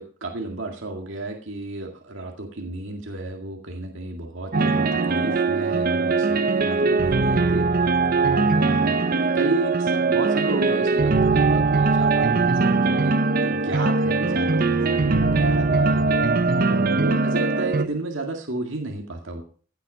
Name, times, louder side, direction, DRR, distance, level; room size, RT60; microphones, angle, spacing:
voice 1, 0.0-7.9 8.2-9.0 9.3-19.4, right 2 dB, 65° right, 2 dB, 2.2 m, -32 dB
sound 1, 4.5-17.9, right 3 dB, 45° right, 0.8 m, -21 dB
16.5 x 8.2 x 5.6 m, 0.43 s
head